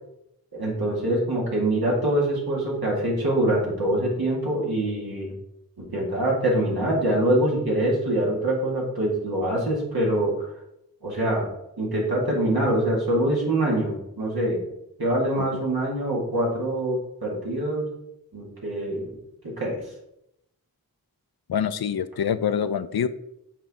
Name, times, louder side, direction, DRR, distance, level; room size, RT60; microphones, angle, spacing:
voice 1, 0.5-5.3 5.8-10.5 11.0-11.5 11.8-14.7 15.0-17.9 18.3-19.2 19.4-19.8, right 1 dB, 85° right, -4 dB, 2.3 m, -24 dB
voice 2, 21.5-23.1, left 8 dB, 85° left, 13 dB, 0.5 m, -25 dB
7.3 x 4.7 x 3.7 m, 0.82 s
wide cardioid pair, 55°, 36 cm